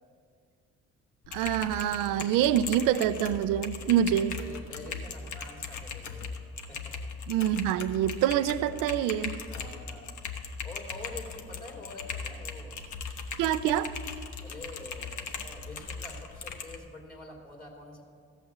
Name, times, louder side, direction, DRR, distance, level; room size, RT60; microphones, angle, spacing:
Typing, 1.2-16.8, left 5 dB, 65° left, 1.1 m, -39 dB
voice 1, 1.3-4.4 7.3-9.4 13.4-13.9, right 11 dB, 90° right, 14 dB, 0.5 m, -26 dB
voice 2, 4.1-6.4 6.7-7.1 9.5-10.2 10.6-12.8 14.4-18.0, left 2 dB, 30° left, 0 dB, 2.5 m, -46 dB
14.5 x 5.8 x 7.3 m, 2.2 s
supercardioid pair, 70°, 32 cm